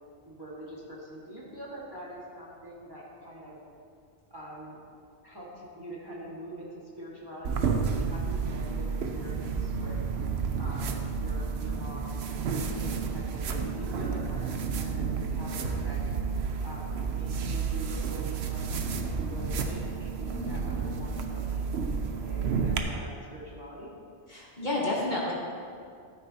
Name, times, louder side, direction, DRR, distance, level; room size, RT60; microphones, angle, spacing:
voice 1, 0.2-3.6 4.3-4.8 5.2-10.0 10.6-12.2 12.7-16.0 16.6-18.8 19.2-21.6 22.2-23.9, right 1 dB, 20° right, -6 dB, 1.9 m, -44 dB
sound 1, 7.4-22.8, right 5 dB, 75° right, 1.0 m, -31 dB
voice 2, 24.3-25.3, left 2 dB, 45° left, -4 dB, 1.4 m, -30 dB
12.5 x 9.3 x 2.9 m, 2.3 s
omnidirectional pair, 1.1 m